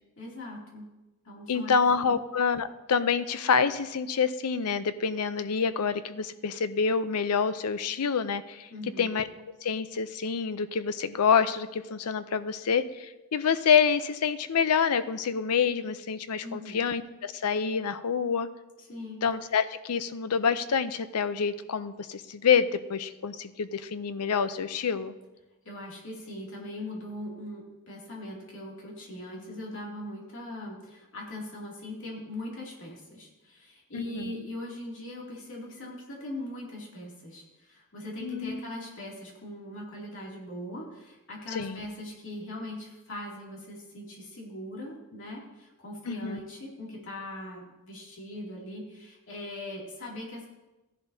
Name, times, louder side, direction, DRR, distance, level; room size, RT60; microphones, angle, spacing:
voice 1, 0.2-0.9 1.2-1.8 2.0-2.2 8.7-9.1 16.4-16.8 18.9-19.2 25.6-50.5, left 1 dB, 60° left, -3 dB, 2.6 m, -40 dB
voice 2, 1.5-8.7 9.0-9.3 9.6-18.5 19.2-25.1 33.9-34.4 38.2-38.6 41.5-41.8 46.1-46.4, left 6 dB, 90° left, 13 dB, 0.6 m, -27 dB
15.0 x 10.5 x 2.8 m, 1.1 s
head